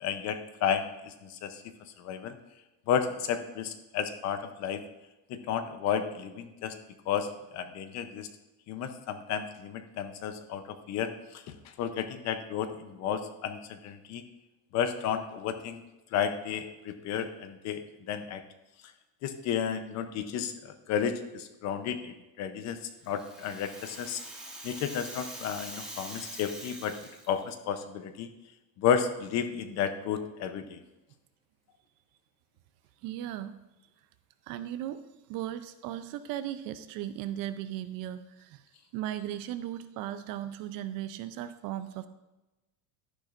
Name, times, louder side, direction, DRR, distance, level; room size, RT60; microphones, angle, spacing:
voice 1, 0.0-1.6 2.0-2.4 2.9-4.8 5.3-6.8 7.1-8.3 8.7-11.4 11.8-14.2 14.7-15.8 16.1-18.4 19.2-22.8 23.1-24.2 24.6-27.0 27.3-28.3 28.8-30.8, left 8 dB, 40° left, 9 dB, 0.7 m, -32 dB
Rattle (instrument), 22.8-27.5, right 1 dB, ahead, 1.4 m, -44 dB
voice 2, 33.0-33.5 34.5-35.0 35.3-38.6 38.9-42.1, right 12 dB, 50° right, 12 dB, 0.5 m, -37 dB
11.5 x 10.5 x 2.5 m, 1.0 s
cardioid pair, 175°, 44 cm